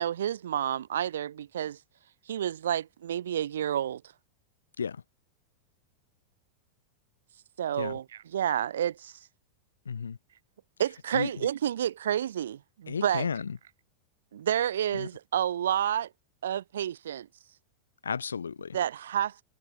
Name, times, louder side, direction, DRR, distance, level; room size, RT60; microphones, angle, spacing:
voice 1, 0.0-1.8 2.3-4.0 7.6-9.1 10.8-13.3 14.3-16.1 16.4-17.3 18.7-19.4, right 10 dB, 65° right, 4.4 m, -30 dB
voice 2, 9.9-10.2 11.1-11.3 12.9-13.6 14.9-15.1 18.0-18.8, left 6 dB, 70° left, 3.0 m, -33 dB
figure-of-eight pair, 90°, 0 cm